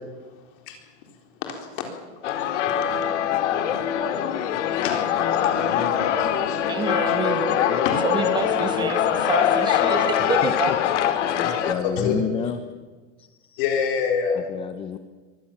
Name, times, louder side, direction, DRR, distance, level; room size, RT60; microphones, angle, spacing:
voice 1, 1.4-1.9 3.7-3.8 4.8-5.0 5.3-6.6 7.1-7.2 7.4-8.0 11.3-12.2 13.6-14.4, left 6 dB, 45° left, 3 dB, 4.0 m, -27 dB
sound 1, 2.2-11.7, left 9 dB, 85° left, 2.6 m, -23 dB
voice 2, 6.6-7.6 8.0-10.7, right 5 dB, 10° right, 7 dB, 1.7 m, -28 dB
voice 3, 10.4-10.8 11.4-12.6 13.2-13.6 14.3-15.0, left 9 dB, 15° left, 10 dB, 0.7 m, -31 dB
23.5 x 21.0 x 7.4 m, 1.4 s
supercardioid pair, 175°, 35 cm